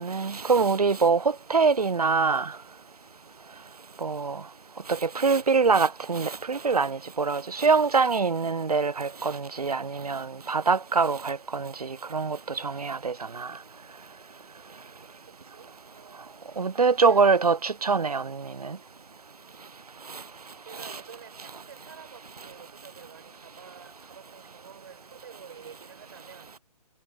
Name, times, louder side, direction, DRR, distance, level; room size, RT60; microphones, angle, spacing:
voice 1, 0.0-2.5 4.0-4.4 4.9-13.5 16.6-18.8 20.1-20.2 20.8-20.9, right 5 dB, 65° right, 0.6 m, -24 dB
voice 2, 15.2-16.3 16.9-17.4 20.6-26.5, right 7 dB, 40° right, 6.4 m, -49 dB
figure-of-eight pair, 145°, 21 cm